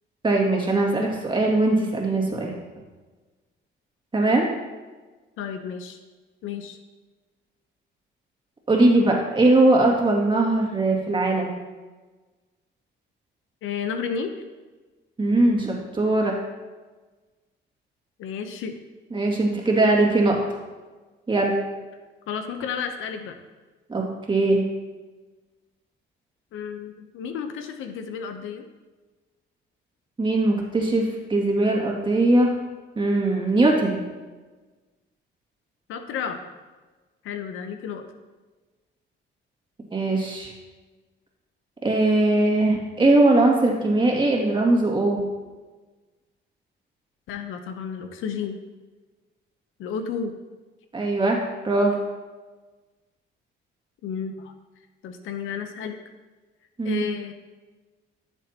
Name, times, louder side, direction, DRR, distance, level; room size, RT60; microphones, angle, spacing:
voice 1, 0.2-2.5 4.1-4.5 8.7-11.5 15.2-16.4 19.1-20.4 21.3-21.5 23.9-24.6 30.2-32.5 33.0-34.0 39.9-40.5 41.8-45.2 50.9-51.4 51.6-52.0 56.8-57.0, right 2 dB, 25° right, -1 dB, 2.4 m, -20 dB
voice 2, 5.4-6.0 6.4-6.8 13.6-14.3 18.2-18.7 22.3-23.4 26.5-28.6 35.9-36.4 37.2-38.1 47.3-48.6 49.8-50.3 54.0-54.5 55.0-56.0 56.8-57.3, left 7 dB, 90° left, 7 dB, 0.9 m, -32 dB
14.0 x 7.2 x 3.0 m, 1.3 s
cardioid pair, 90°, 20 cm